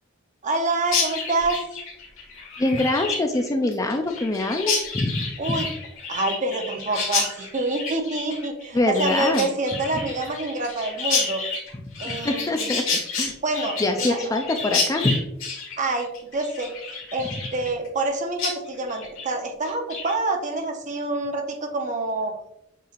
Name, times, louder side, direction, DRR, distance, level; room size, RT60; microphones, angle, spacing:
voice 1, 0.4-1.6 5.4-5.7 6.1-11.4 12.0-12.5 13.4-14.2 15.8-22.3, right 2 dB, 35° right, 4 dB, 0.6 m, -27 dB
Chirp tweet, 0.8-18.1 18.4-18.5 18.9-19.3 19.6-20.1, left 4 dB, 80° left, 1.7 m, -29 dB
voice 2, 2.6-5.6 8.7-9.5 9.9-10.0 12.0-12.8 13.1-15.2, left 2 dB, 15° left, 4 dB, 0.3 m, -24 dB
6.7 x 3.2 x 2.4 m, 0.84 s
head